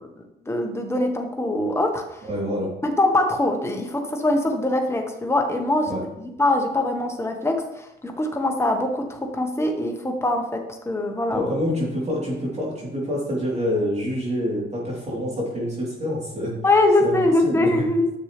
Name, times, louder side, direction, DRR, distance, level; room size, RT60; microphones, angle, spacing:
voice 1, 0.0-2.2 2.8-5.9 6.4-11.5 16.6-18.2, left 2 dB, 15° left, 3 dB, 1.4 m, -23 dB
voice 2, 2.2-2.7 5.9-6.0 11.3-16.6 17.0-17.2 17.4-17.9, equal, 35° right, -5 dB, 3.4 m, -26 dB
9.9 x 6.7 x 3.3 m, 0.90 s
cardioid pair, 90°, 20 cm